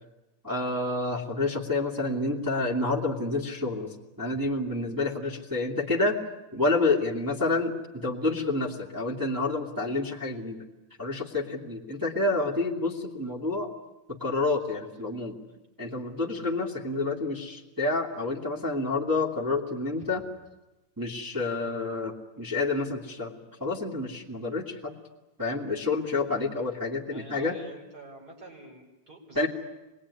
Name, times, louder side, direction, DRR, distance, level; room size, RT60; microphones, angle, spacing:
voice 1, 0.4-6.2 6.5-10.6 11.0-13.7 14.1-15.4 15.8-20.3 21.0-25.0 25.4-27.6 29.3-29.5, left 3 dB, 10° right, -4 dB, 2.4 m, -29 dB
voice 2, 27.0-29.5, right 2 dB, 45° right, 1 dB, 5.5 m, -47 dB
25.5 x 20.5 x 9.8 m, 1.0 s
omnidirectional pair, 2.4 m